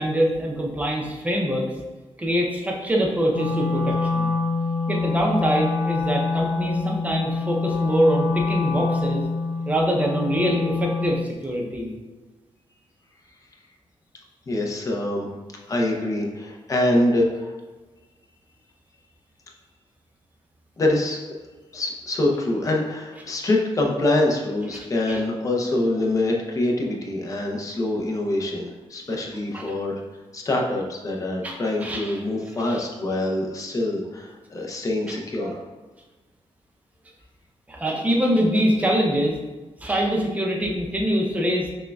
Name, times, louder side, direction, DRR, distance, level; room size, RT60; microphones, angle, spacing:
voice 1, 0.0-1.7 2.2-4.3 4.9-9.2 9.7-11.9 25.1-25.2 29.5-29.7 31.4-32.2 32.7-32.8 35.1-35.6 37.7-39.3 39.8-41.8, equal, 15° right, -1 dB, 0.6 m, -24 dB
Wind instrument woodwind instrument, 3.3-11.3, left 3 dB, 90° left, 0.5 m, -25 dB
voice 2, 14.5-15.3 15.7-17.5 20.8-21.2 21.7-30.0 30.3-35.6, left 1 dB, 30° left, 0 dB, 0.6 m, -25 dB
6.2 x 2.2 x 2.3 m, 1.3 s
wide cardioid pair, 130°, 10 cm